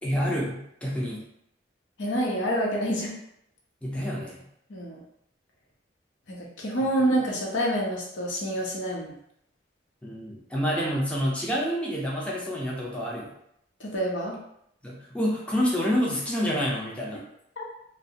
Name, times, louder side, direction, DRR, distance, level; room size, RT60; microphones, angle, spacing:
voice 1, 0.0-1.3 3.8-4.5 10.0-13.3 14.8-17.2, equal, 5° left, -4 dB, 0.4 m, -28 dB
voice 2, 2.0-3.1 4.7-5.0 6.3-9.2 13.8-14.4 17.6-17.7, right 1 dB, 85° left, -2 dB, 0.7 m, -27 dB
2.5 x 2.0 x 2.7 m, 0.75 s
head